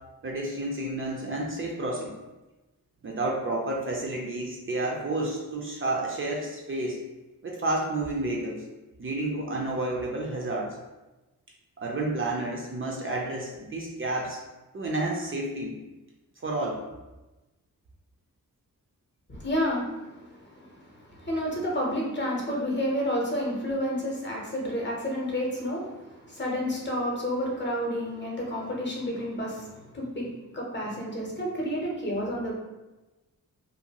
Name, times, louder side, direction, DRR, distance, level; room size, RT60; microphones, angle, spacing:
voice 1, 0.2-2.1 3.0-7.0 7.4-8.6 9.0-10.8 11.8-14.4 14.7-15.7 16.4-16.8, right 2 dB, 40° right, -2 dB, 0.4 m, -30 dB
voice 2, 19.3-32.5, equal, 30° left, -3 dB, 0.7 m, -30 dB
2.6 x 2.2 x 2.8 m, 1.1 s
wide cardioid pair, 105°, 35 cm